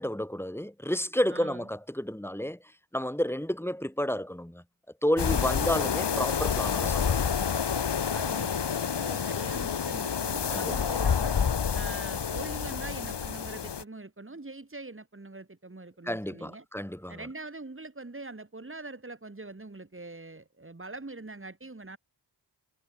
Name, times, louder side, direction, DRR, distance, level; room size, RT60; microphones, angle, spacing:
voice 1, 0.0-2.6 2.9-4.6 5.0-7.2 10.5-10.7 16.1-17.2, equal, 5° left, 2.4 m, -31 dB
voice 2, 1.3-1.7 5.4-6.3 8.1-11.4 11.7-16.7 17.1-22.0, right 2 dB, 25° right, 7.5 m, -43 dB
sound 1, 5.2-13.8, left 7 dB, 60° left, 3.0 m, -28 dB
cardioid pair, 50°, 46 cm